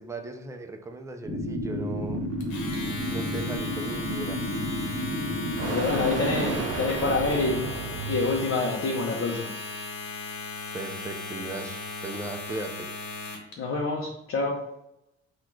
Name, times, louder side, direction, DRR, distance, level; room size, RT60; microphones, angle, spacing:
voice 1, 0.0-2.3 3.1-4.4 5.6-7.1 10.7-12.9, right 3 dB, 10° right, 5 dB, 0.5 m, -38 dB
sound 1, 1.2-6.6, equal, 35° right, 1.5 m, -31 dB
sound 2, 1.7-8.7, right 5 dB, 55° right, 0.6 m, -36 dB
Domestic sounds home sounds, 2.4-13.5, left 3 dB, 85° left, 1.1 m, -37 dB
voice 2, 5.7-7.7 8.1-9.5 13.6-14.6, left 3 dB, 45° left, -1 dB, 0.7 m, -27 dB
4.1 x 2.4 x 4.5 m, 0.85 s
cardioid pair, 90°, 30 cm